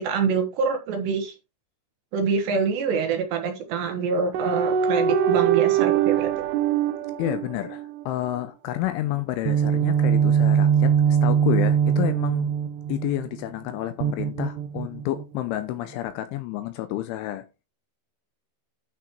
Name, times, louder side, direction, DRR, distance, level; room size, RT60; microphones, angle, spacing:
voice 1, 0.0-1.3 2.1-6.3, right 5 dB, 70° right, 3.0 m, -25 dB
sound 1, 4.3-8.0 9.5-13.2 14.0-15.2, right 8 dB, 85° right, 2.3 m, -22 dB
voice 2, 7.2-12.5 12.9-17.4, left 14 dB, 80° left, 2.8 m, -30 dB
12.0 x 6.2 x 3.1 m
omnidirectional pair, 6.0 m